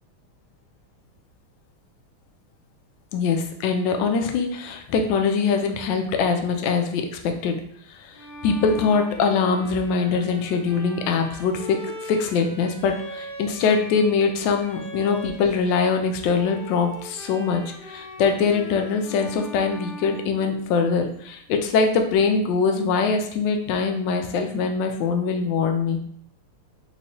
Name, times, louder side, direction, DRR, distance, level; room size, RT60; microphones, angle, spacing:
voice 1, 3.1-7.6 8.4-26.0, left 5 dB, 75° left, 4 dB, 1.1 m, -23 dB
Bowed string instrument, 8.1-16.0 16.3-21.1, equal, 40° left, 0.9 m, -40 dB
3.6 x 3.1 x 2.7 m, 0.67 s
omnidirectional pair, 2.4 m